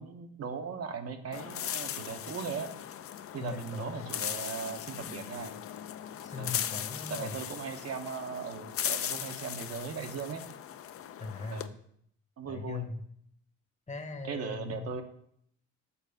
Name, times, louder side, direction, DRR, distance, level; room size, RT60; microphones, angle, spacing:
voice 1, 0.0-2.7 3.3-5.6 6.4-6.6 7.1-10.4 11.5-11.7 12.4-12.9 14.2-15.0, right 6 dB, 55° right, 5 dB, 0.8 m, -38 dB
sound 1, 1.3-11.7, left 10 dB, 50° left, 0.4 m, -38 dB
voice 2, 3.4-4.1 6.2-7.4 11.2-11.8 12.5-13.0 13.9-15.0, left 4 dB, 25° left, 6 dB, 0.9 m, -40 dB
7.1 x 4.1 x 5.2 m, 0.68 s
cardioid pair, 90°, 30 cm